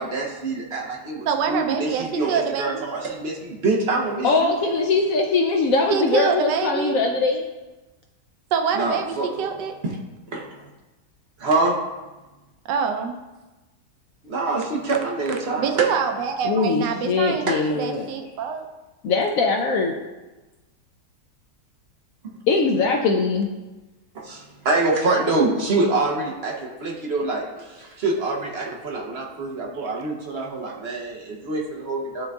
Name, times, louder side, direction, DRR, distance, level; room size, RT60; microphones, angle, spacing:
voice 1, 0.0-4.5 8.7-9.5 9.8-10.0 10.3-10.7 11.4-11.8 14.2-15.9 17.5-17.7 24.1-32.3, right 3 dB, 45° right, -1 dB, 0.9 m, -25 dB
voice 2, 1.3-2.8 5.9-7.0 8.5-9.7 12.7-13.2 15.6-18.7 30.7-30.8, right 6 dB, 90° right, 5 dB, 1.3 m, -25 dB
voice 3, 4.2-7.4 16.4-18.1 19.0-20.0 22.5-23.5, left 3 dB, 70° left, 2 dB, 0.8 m, -21 dB
11.0 x 3.8 x 2.3 m, 1.1 s
omnidirectional pair, 1.8 m